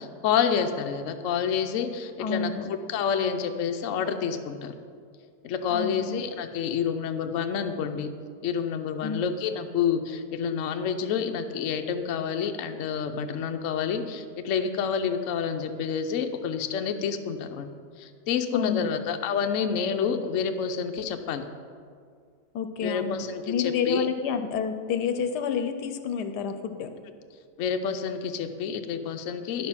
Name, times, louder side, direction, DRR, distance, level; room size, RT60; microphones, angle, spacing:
voice 1, 0.0-4.7 5.4-8.1 8.4-17.7 18.0-21.4 22.8-24.1 27.6-29.7, left 7 dB, 65° left, 7 dB, 0.8 m, -28 dB
voice 2, 2.2-2.7 5.7-6.2 9.0-9.3 18.5-19.0 22.5-26.9, left 6 dB, 80° left, 8 dB, 1.2 m, -29 dB
10.0 x 6.5 x 5.7 m, 2.1 s
omnidirectional pair, 1.8 m